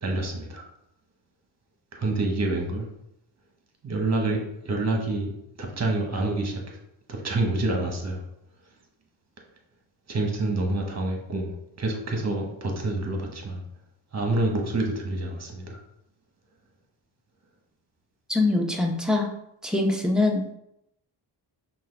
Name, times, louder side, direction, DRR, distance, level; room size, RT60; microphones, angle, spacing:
voice 1, 0.0-0.6 1.9-2.9 3.8-5.3 5.6-6.8 7.1-8.2 10.1-11.5 11.8-13.6 14.1-15.8, right 2 dB, 40° right, 1 dB, 1.2 m, -27 dB
voice 2, 18.3-19.3 19.6-20.6, left 2 dB, ahead, 0 dB, 0.8 m, -23 dB
5.5 x 2.6 x 3.4 m, 0.79 s
cardioid pair, 75°, 43 cm